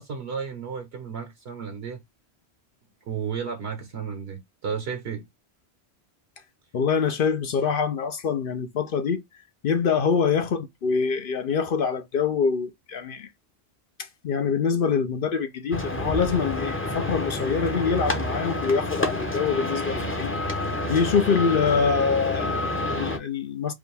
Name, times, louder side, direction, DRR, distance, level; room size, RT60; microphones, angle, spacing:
voice 1, 0.0-2.0 3.1-5.3 20.0-20.4, right 6 dB, 70° right, 1.1 m, -33 dB
voice 2, 6.7-9.2 9.6-13.3 14.0-20.3 20.6-23.7, left 6 dB, 60° left, 0.7 m, -25 dB
sound 1, 15.7-23.2, left 1 dB, 15° left, 0.6 m, -28 dB
5.1 x 2.3 x 3.2 m
omnidirectional pair, 1.1 m